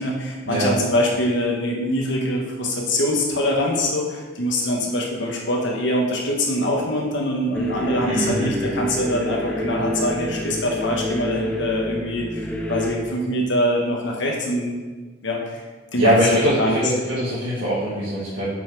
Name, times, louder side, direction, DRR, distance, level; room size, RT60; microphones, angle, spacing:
voice 1, 0.0-14.8 15.2-15.6 15.9-16.8, left 1 dB, 65° left, -1 dB, 1.1 m, -24 dB
sound 1, 7.5-13.0, equal, 5° left, 0.5 m, -28 dB
voice 2, 8.1-8.5 16.0-18.5, equal, 85° right, -9 dB, 1.6 m, -21 dB
5.4 x 5.3 x 4.6 m, 1.4 s
head